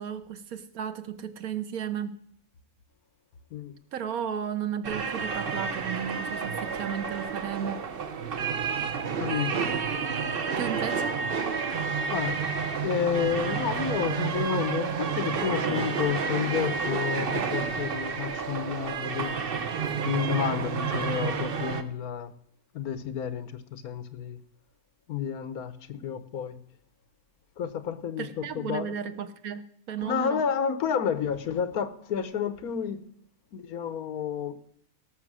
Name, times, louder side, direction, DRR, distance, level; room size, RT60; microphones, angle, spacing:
voice 1, 0.0-2.2 3.9-7.9 10.6-11.2 28.2-30.4, right 8 dB, 70° right, 1.3 m, -34 dB
sound 1, 4.8-21.8, right 6 dB, 45° right, 0.9 m, -30 dB
voice 2, 9.2-9.6 12.1-12.4 12.8-19.3 20.0-22.3 22.7-24.4 25.1-26.6 27.6-28.9 30.0-33.0 33.5-34.6, left 8 dB, 75° left, 1.4 m, -30 dB
17.5 x 6.5 x 6.2 m
omnidirectional pair, 1.6 m